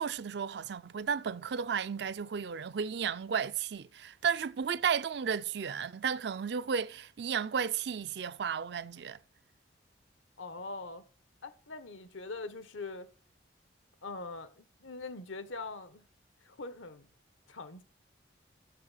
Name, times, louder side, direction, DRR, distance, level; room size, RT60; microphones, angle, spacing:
voice 1, 0.0-9.2, right 7 dB, 60° right, 0.4 m, -33 dB
voice 2, 10.4-11.0 11.4-13.1 14.0-16.0 16.4-17.1 17.5-17.8, left 3 dB, 85° left, 1.2 m, -42 dB
7.5 x 7.4 x 7.9 m
head